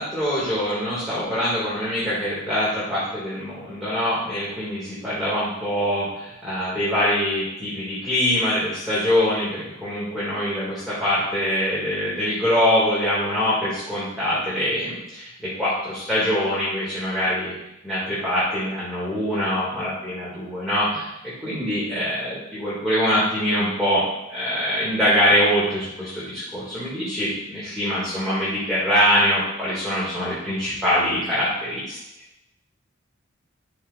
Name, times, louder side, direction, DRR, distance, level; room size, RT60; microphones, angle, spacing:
voice 1, 0.0-17.5 17.8-21.1 21.4-24.0 24.3-32.0, equal, ahead, -12 dB, 2.3 m, -24 dB
12.0 x 4.7 x 2.6 m, 0.85 s
head